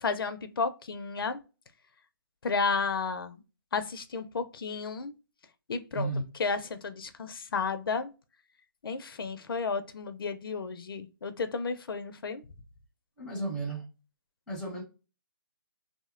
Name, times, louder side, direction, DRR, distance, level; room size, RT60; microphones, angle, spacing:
voice 1, 0.0-1.4 2.4-3.4 3.7-5.1 5.7-6.1 6.4-8.1 8.8-12.4, left 4 dB, 80° left, 0.4 m, -32 dB
voice 2, 13.2-13.9 14.5-14.8, right 2 dB, 5° left, 0.7 m, -33 dB
2.6 x 2.1 x 2.3 m
hypercardioid pair, 160°, 12 cm